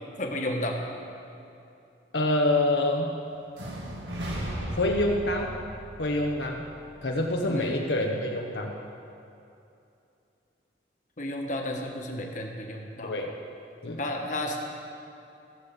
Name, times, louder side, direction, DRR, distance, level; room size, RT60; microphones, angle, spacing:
voice 1, 0.2-0.8 7.5-7.8 11.2-13.1 14.0-14.6, left 1 dB, 45° left, 1 dB, 1.5 m, -32 dB
voice 2, 2.1-3.2 4.8-5.5 6.0-6.7 7.0-8.7 13.0-13.3 13.8-14.0, left 1 dB, 75° left, 0 dB, 1.0 m, -26 dB
sound 1, 3.5-7.5, right 1 dB, 85° right, 2.3 m, -37 dB
15.5 x 7.4 x 7.3 m, 2.7 s
head